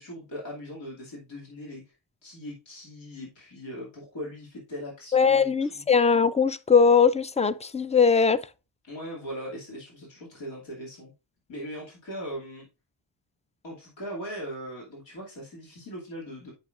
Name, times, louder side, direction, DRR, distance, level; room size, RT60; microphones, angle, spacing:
voice 1, 0.0-1.8 2.2-5.8 8.8-11.1 11.5-12.7 13.6-16.5, equal, 80° left, 2.6 m, -39 dB
voice 2, 5.1-8.4, left 5 dB, 15° left, 0.3 m, -20 dB
8.1 x 5.7 x 2.5 m
cardioid pair, 65°, 45 cm